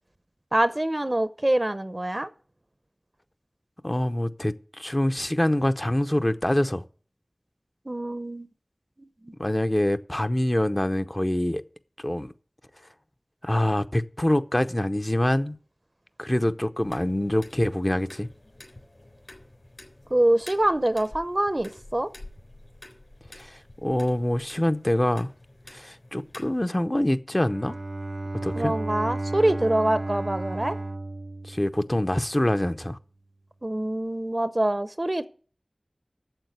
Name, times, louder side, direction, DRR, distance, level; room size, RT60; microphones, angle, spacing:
voice 1, 0.5-2.3 7.9-8.5 9.0-9.3 20.1-22.1 28.5-30.8 33.6-35.3, right 1 dB, 40° right, 0.7 m, -25 dB
voice 2, 3.8-6.8 9.4-11.6 12.0-12.3 13.4-15.6 16.2-18.3 23.4-25.3 25.7-27.8 28.4-28.7 31.4-33.0, left 1 dB, 30° left, 0.7 m, -25 dB
sound 1, 16.8-26.7, left 1 dB, 65° left, 3.4 m, -48 dB
Bowed string instrument, 27.3-32.3, right 2 dB, 75° right, 0.5 m, -33 dB
9.0 x 7.2 x 8.1 m
wide cardioid pair, 45°, 0 cm